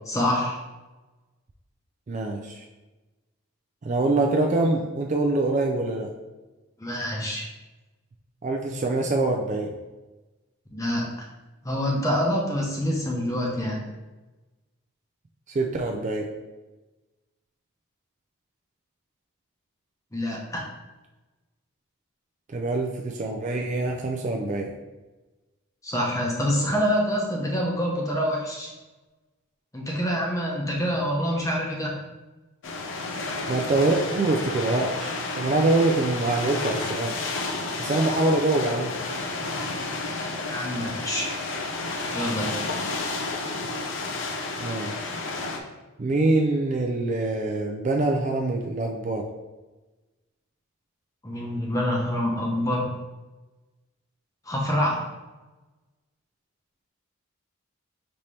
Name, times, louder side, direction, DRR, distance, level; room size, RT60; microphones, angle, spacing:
voice 1, 0.1-0.6 6.8-7.5 10.7-11.1 11.6-13.8 20.1-20.6 25.8-28.7 29.7-31.9 40.5-41.3 42.1-42.6 51.2-52.9 54.4-55.0, equal, 15° left, -3 dB, 0.7 m, -26 dB
voice 2, 2.1-2.6 3.8-6.1 8.4-9.7 15.5-16.3 22.5-24.7 33.5-37.2 37.8-38.9 44.6-45.1 46.0-49.3, right 2 dB, 35° right, 1 dB, 0.3 m, -25 dB
sound 1, 32.6-45.6, left 3 dB, 60° left, 0.5 m, -31 dB
5.3 x 2.9 x 3.2 m, 1.1 s
head